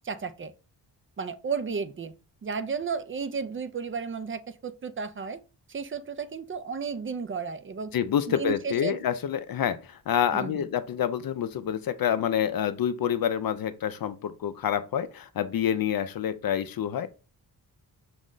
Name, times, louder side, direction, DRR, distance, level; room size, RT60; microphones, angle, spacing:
voice 1, 0.0-0.5 1.2-2.2 2.4-5.4 5.7-7.9 8.3-9.0 10.3-10.7, right 5 dB, 30° right, 0.5 m, -33 dB
voice 2, 7.9-17.1, left 9 dB, 55° left, 0.5 m, -27 dB
6.2 x 2.1 x 3.8 m
cardioid pair, 60°, 42 cm